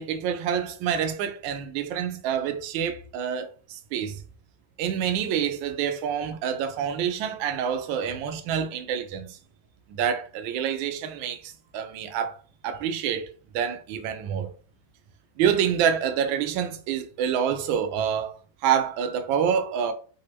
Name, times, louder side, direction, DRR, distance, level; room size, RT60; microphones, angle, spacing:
voice 1, 0.0-4.2 4.8-9.4 9.9-12.4 12.6-14.5 15.4-18.4 18.6-19.9, right 8 dB, 75° right, 1.3 m, -27 dB
3.4 x 2.4 x 3.0 m
omnidirectional pair, 2.2 m